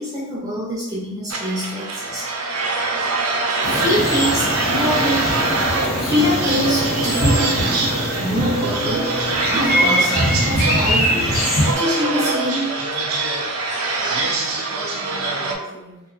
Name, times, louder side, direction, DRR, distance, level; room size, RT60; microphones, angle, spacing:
voice 1, 0.0-3.1 3.7-5.5 6.0-9.2 9.4-12.9, equal, 15° right, -6 dB, 0.4 m, -25 dB
sound 1, 1.3-15.6, right 3 dB, 90° right, 0.5 m, -24 dB
sound 2, 3.6-11.7, equal, 75° left, 1.1 m, -22 dB
voice 2, 14.0-16.0, equal, 15° left, -5 dB, 0.7 m, -41 dB
2.3 x 2.1 x 3.7 m, 0.99 s
head